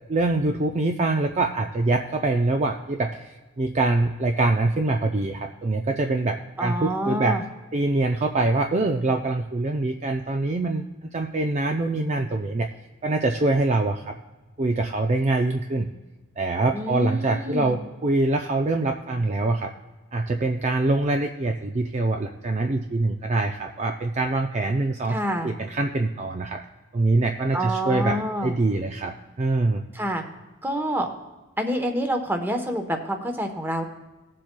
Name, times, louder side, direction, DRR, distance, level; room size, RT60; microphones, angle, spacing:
voice 1, 0.1-7.4 7.7-12.7 13.0-14.2 14.6-15.9 16.4-19.7 20.1-25.2 25.4-26.6 26.9-29.8, right 2 dB, 35° right, 4 dB, 0.4 m, -24 dB
voice 2, 6.6-7.4 16.7-17.8 25.1-25.5 27.5-28.5 29.9-30.2 30.6-31.1 31.6-33.8, equal, 10° right, 5 dB, 0.9 m, -27 dB
19.0 x 7.6 x 2.2 m, 1.2 s
head